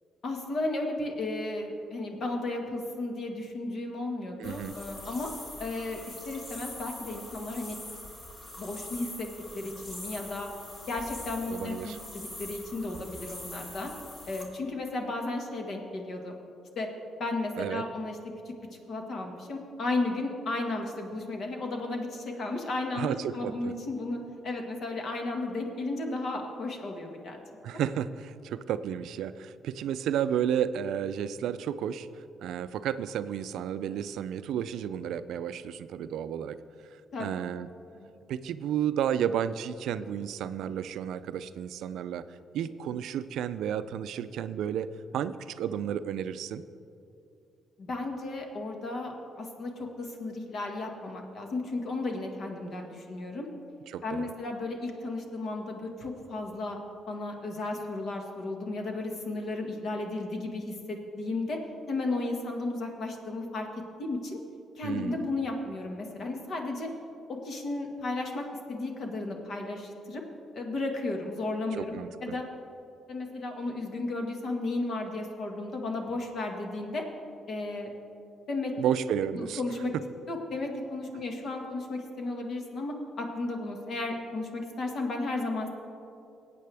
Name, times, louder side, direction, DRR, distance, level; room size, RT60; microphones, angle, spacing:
voice 1, 0.2-5.3 5.6-7.8 8.6-9.3 9.5-10.5 10.9-13.9 14.3-16.3 16.7-16.9 17.2-18.2 18.4-18.5 18.9-24.2 24.4-27.4 37.1-37.3 37.9-38.1 47.8-53.5 54.0-56.8 57.1-61.6 61.9-63.7 64.0-64.4 64.8-66.9 67.3-70.2 70.5-71.9 72.2-72.4 73.1-77.0 77.5-77.9 78.5-78.7 79.3-79.9 80.3-85.7, left 2 dB, 60° left, 2 dB, 1.6 m, -34 dB
sound 1, 4.4-14.4, left 1 dB, 45° left, 2.3 m, -44 dB
voice 2, 4.4-4.7 11.5-12.0 17.6-17.8 22.9-23.7 27.6-32.1 32.4-36.6 37.2-37.7 38.3-42.2 42.5-44.9 45.1-46.6 53.9-54.3 64.8-65.2 71.8-72.4 78.8-79.6, right 9 dB, 80° right, 13 dB, 0.4 m, -32 dB
18.5 x 8.5 x 3.4 m, 2.7 s
cardioid pair, 90°, 0 cm